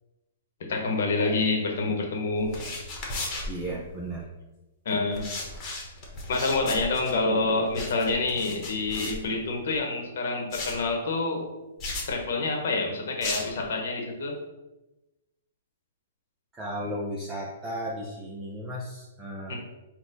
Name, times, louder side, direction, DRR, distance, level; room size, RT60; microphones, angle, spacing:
voice 1, 0.6-2.6 4.8-5.3 6.3-11.5 12.1-14.3 19.5-19.6, left 3 dB, 70° left, 1 dB, 0.9 m, -27 dB
sound 1, 2.4-4.2 5.1-9.8 10.5-10.9 11.8-12.1 13.2-13.6, left 2 dB, 30° left, 1.1 m, -36 dB
voice 2, 3.5-4.3 16.5-19.6, equal, 15° right, -4 dB, 0.6 m, -35 dB
4.1 x 2.2 x 4.0 m, 1.0 s
hypercardioid pair, 140°, 0 cm